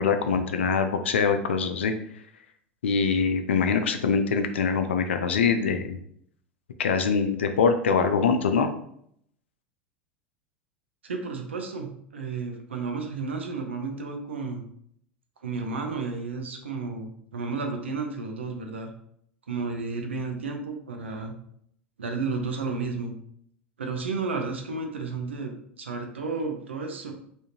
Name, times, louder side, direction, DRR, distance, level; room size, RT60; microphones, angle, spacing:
voice 1, 0.0-1.9 2.8-6.0 6.8-8.7, left 5 dB, 75° left, 7 dB, 0.4 m, -23 dB
voice 2, 11.0-14.6 15.4-18.9 19.5-21.3 22.0-23.1 23.8-27.1, right 4 dB, 80° right, 3 dB, 0.6 m, -32 dB
3.5 x 2.7 x 2.8 m, 0.68 s
figure-of-eight pair, 85°, 6 cm